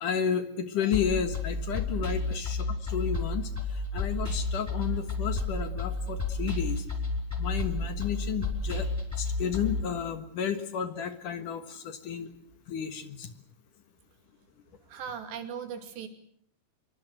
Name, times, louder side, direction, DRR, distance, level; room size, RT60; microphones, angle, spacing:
voice 1, 0.0-6.8 7.4-8.9 9.2-12.3 12.7-13.3, left 8 dB, 60° left, 10 dB, 2.6 m, -32 dB
sound 1, 0.9-9.8, left 2 dB, 5° right, 4.8 m, -31 dB
voice 2, 14.9-16.1, right 7 dB, 85° right, 8 dB, 4.8 m, -38 dB
26.0 x 23.5 x 7.9 m, 0.63 s
omnidirectional pair, 4.8 m